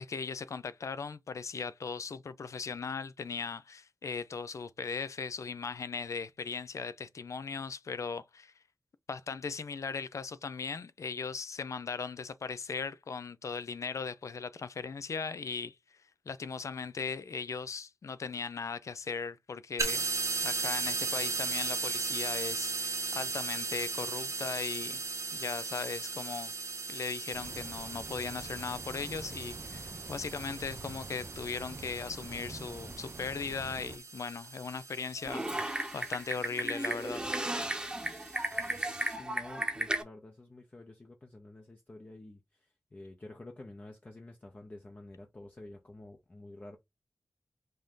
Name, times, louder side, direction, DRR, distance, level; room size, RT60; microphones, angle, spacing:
voice 1, 0.0-8.5 9.1-15.8 16.3-20.1 20.4-25.0 25.3-26.5 26.9-37.2, left 5 dB, 75° left, 0.5 m, -38 dB
sound 1, 19.8-39.1, right 4 dB, 85° right, 1.3 m, -38 dB
sound 2, 27.3-34.0, right 3 dB, 40° right, 0.4 m, -46 dB
Typing, 35.2-40.0, right 1 dB, 15° right, 0.9 m, -34 dB
voice 2, 39.2-42.4 42.9-46.8, left 2 dB, 30° left, 0.7 m, -49 dB
5.3 x 2.7 x 3.7 m
wide cardioid pair, 105°, 5 cm